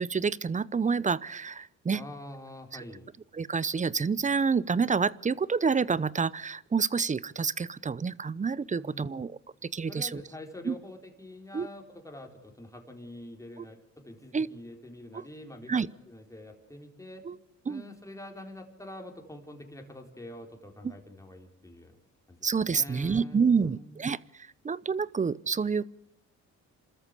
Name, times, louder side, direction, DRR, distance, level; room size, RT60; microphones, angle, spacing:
voice 1, 0.0-2.0 2.7-2.8 3.3-10.2 10.7-10.8 11.5-11.7 13.6-13.7 14.3-14.5 15.1-15.2 15.7-15.9 17.3-17.4 17.7-17.8 20.8-20.9 22.4-24.2 24.6-25.9, right 5 dB, 25° right, 21 dB, 0.7 m, -28 dB
voice 2, 1.9-3.0 8.7-9.2 9.9-15.7 16.1-17.2 17.7-21.9 22.3-22.4 22.7-24.0, left 1 dB, 10° left, 3 dB, 4.2 m, -46 dB
27.0 x 13.5 x 8.4 m, 0.79 s
cardioid pair, 90°, 30 cm